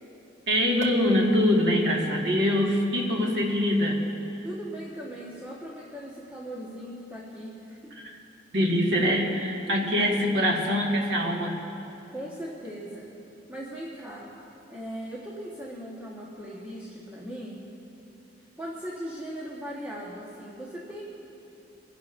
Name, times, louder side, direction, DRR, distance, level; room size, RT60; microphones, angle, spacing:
voice 1, 0.5-4.0 8.0-8.2 8.5-11.6, equal, 60° right, -2 dB, 1.9 m, -24 dB
voice 2, 4.4-7.9 12.1-13.1 13.5-14.3 14.7-17.7 18.6-21.0, equal, 10° right, -5 dB, 1.3 m, -39 dB
26.0 x 11.5 x 2.6 m, 3.0 s
head